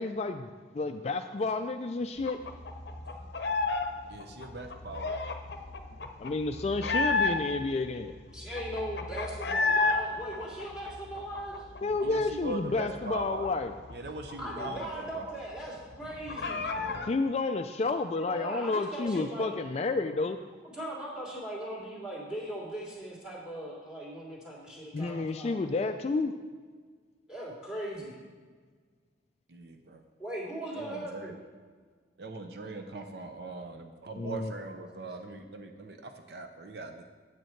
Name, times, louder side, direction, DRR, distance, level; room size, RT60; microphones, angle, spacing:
voice 1, 0.0-2.4 6.2-8.1 11.8-13.7 17.0-20.4 24.9-26.3 34.2-34.5, left 3 dB, 35° left, 8 dB, 0.3 m, -30 dB
sound 1, 2.3-3.9 4.1-7.7 8.1-8.2 8.4-10.0 10.3-12.0 12.4-12.5 12.8-15.2 15.5-15.6 15.9-17.1, left 3 dB, 65° left, 0.7 m, -31 dB
voice 2, 4.1-5.2 12.0-13.5 13.9-15.2 16.7-17.1 29.5-30.0 30.7-31.4 32.2-37.1, right 3 dB, 60° right, 5 dB, 0.6 m, -41 dB
voice 3, 8.3-11.6 14.4-16.7 18.2-19.5 20.7-25.9 27.3-28.2 30.2-31.4, right 1 dB, 5° right, -5 dB, 2.5 m, -39 dB
9.2 x 7.9 x 4.5 m, 1.5 s
head